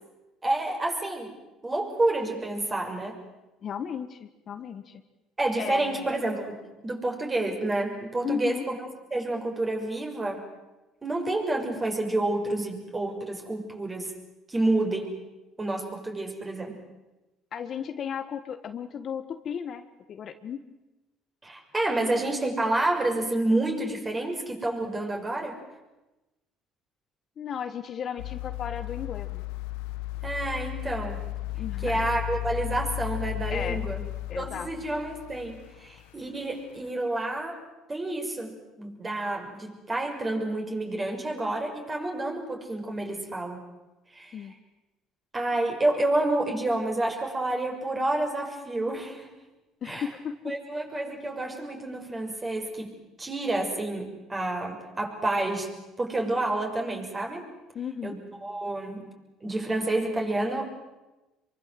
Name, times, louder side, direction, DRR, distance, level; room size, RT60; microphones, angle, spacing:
voice 1, 0.4-1.3 1.6-3.2 5.4-8.8 9.1-10.5 11.0-14.1 14.5-15.2 15.6-16.8 21.4-25.6 30.2-31.3 31.8-34.0 34.3-37.6 37.9-43.6 44.1-44.4 45.3-49.3 49.9-50.1 50.5-55.7 56.0-57.5 58.0-59.1 59.4-60.7, right 2 dB, 20° right, 2 dB, 6.3 m, -29 dB
voice 2, 3.6-5.0 5.6-6.1 8.2-8.6 17.5-19.8 20.1-20.6 27.4-29.4 31.6-32.1 33.5-33.8 34.3-34.7 44.3-44.5 49.8-50.5 57.7-58.2, left 8 dB, 50° left, 9 dB, 1.6 m, -35 dB
sound 1, 28.2-36.4 36.9-37.0, left 17 dB, 90° left, 1.3 m, -34 dB
26.0 x 24.0 x 7.9 m, 1.0 s
supercardioid pair, 90°, 0 cm